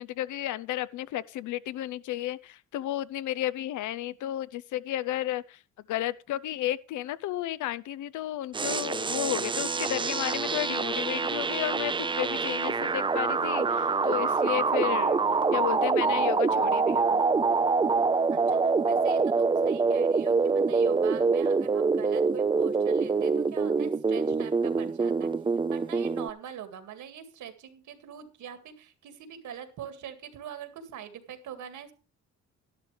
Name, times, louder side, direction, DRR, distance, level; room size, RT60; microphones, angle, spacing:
voice 1, 0.0-5.4 5.9-11.9 12.2-15.2 15.5-17.2, left 13 dB, 80° left, 0.6 m, -32 dB
sound 1, 8.5-26.3, right 4 dB, 15° right, 0.4 m, -25 dB
voice 2, 18.3-25.3 25.7-31.9, right 9 dB, 75° right, 2.2 m, -43 dB
12.0 x 11.5 x 3.3 m
cardioid pair, 90°, 30 cm